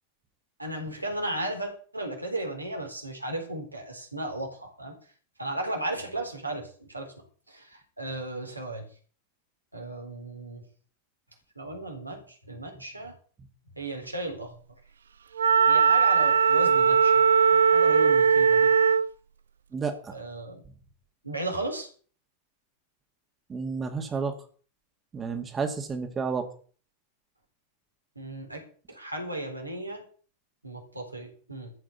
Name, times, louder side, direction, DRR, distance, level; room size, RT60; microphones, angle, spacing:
voice 1, 0.6-4.9 5.4-7.1 7.5-7.7 8.0-8.9 9.7-10.6 11.6-13.1 13.8-14.5 15.7-17.2 17.5-18.7 20.1-20.6 21.2-21.9 28.2-28.6 28.9-30.0 30.6-31.7, right 2 dB, 85° right, 2 dB, 3.8 m, -35 dB
Wind instrument woodwind instrument, 15.4-19.1, right 6 dB, 70° right, 0.5 m, -20 dB
voice 2, 19.7-20.1 23.5-24.3 25.1-26.4, right 5 dB, 20° right, 5 dB, 2.2 m, -31 dB
14.0 x 6.0 x 8.1 m, 0.42 s
figure-of-eight pair, 90°, 0 cm